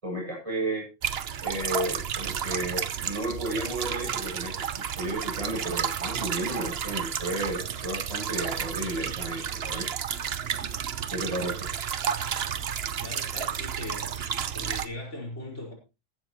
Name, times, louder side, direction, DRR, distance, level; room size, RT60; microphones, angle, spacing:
voice 1, 0.0-0.9 1.4-9.9 11.1-11.7, right 1 dB, 25° right, -2 dB, 7.5 m, -33 dB
sound 1, 1.0-14.9, right 8 dB, 55° right, 1.0 m, -32 dB
voice 2, 11.9-12.3 13.0-14.1 14.5-15.7, left 1 dB, 65° left, -1 dB, 5.6 m, -39 dB
14.5 x 13.5 x 3.1 m, 0.28 s
omnidirectional pair, 1.3 m